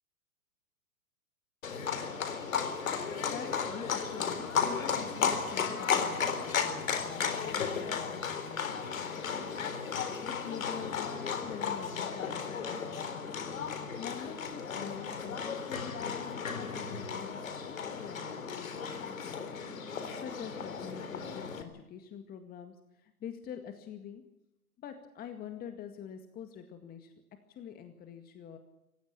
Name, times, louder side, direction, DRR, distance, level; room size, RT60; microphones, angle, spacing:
Livestock farm animals working animals, 1.6-21.6, left 6 dB, 65° left, 3.8 m, -34 dB
voice 1, 2.5-13.5 14.0-24.2 24.8-27.1 27.5-28.6, left 8 dB, 20° left, 7 dB, 2.0 m, -46 dB
27.0 x 16.0 x 8.9 m, 0.86 s
figure-of-eight pair, 115°, 43 cm